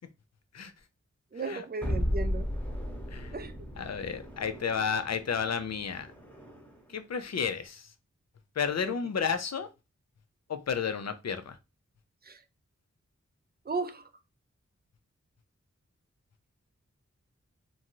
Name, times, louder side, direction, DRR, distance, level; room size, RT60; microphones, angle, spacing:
voice 1, 1.3-2.5 3.3-3.5 8.8-8.9 12.2-12.4 13.7-14.0, right 3 dB, 35° right, 0.4 m, -35 dB
sound 1, 1.8-6.9, equal, 5° left, 0.9 m, -35 dB
voice 2, 3.8-6.1 6.9-7.9 8.6-9.7 10.5-11.6, left 6 dB, 60° left, 0.5 m, -32 dB
2.6 x 2.3 x 2.9 m
wide cardioid pair, 40°, 30 cm